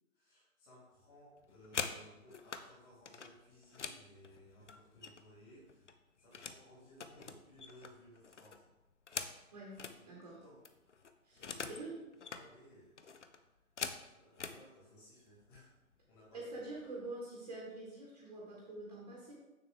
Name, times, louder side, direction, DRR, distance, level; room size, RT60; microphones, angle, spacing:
voice 1, 0.1-5.9 6.2-8.6 9.8-10.6 11.3-12.0 12.3-13.0 14.1-15.7 16.1-16.6, equal, 15° left, -7 dB, 2.4 m, -60 dB
sound 1, 1.4-2.7 3.1-5.4 5.7-6.6 6.9-10.0 10.4-10.5 10.6-11.9 12.1-12.5 13.0-14.6 15.4-15.6 15.9-16.3 16.6-17.1, left 5 dB, 55° left, 0.7 m, -44 dB
voice 2, 10.0-10.4 11.2-11.4 11.7-11.9 16.3-19.3, right 2 dB, 25° right, -4 dB, 1.5 m, -46 dB
6.9 x 6.7 x 3.4 m, 1.0 s
figure-of-eight pair, 155°, 43 cm